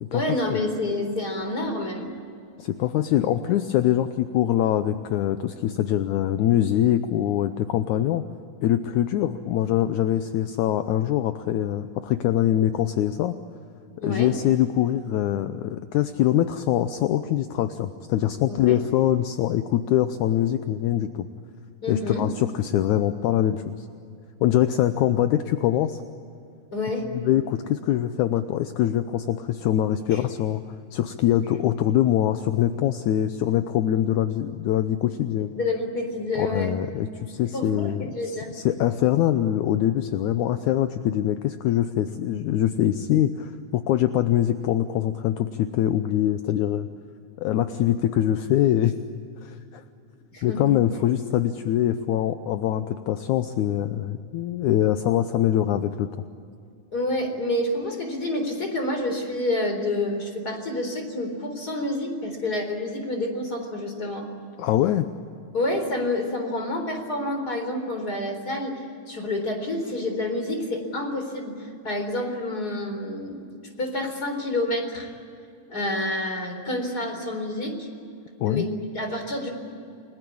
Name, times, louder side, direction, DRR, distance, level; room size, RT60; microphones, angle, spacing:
voice 1, 0.1-2.1 14.0-14.3 18.5-18.8 21.8-22.3 26.7-27.0 30.1-30.2 35.5-36.7 37.5-38.5 50.3-50.7 56.9-64.3 65.5-73.5 73.8-75.1 75.7-77.9 78.5-79.5, left 1 dB, 25° left, 4 dB, 4.2 m, -28 dB
voice 2, 2.6-8.2 8.6-13.4 14.0-21.3 21.9-23.6 24.4-26.0 27.2-30.6 30.9-35.5 36.4-46.9 47.4-49.0 49.4-49.8 50.4-56.1 64.6-65.1 78.4-78.7, left 11 dB, 75° left, 9 dB, 1.9 m, -23 dB
30.0 x 20.5 x 8.6 m, 2.5 s
omnidirectional pair, 4.2 m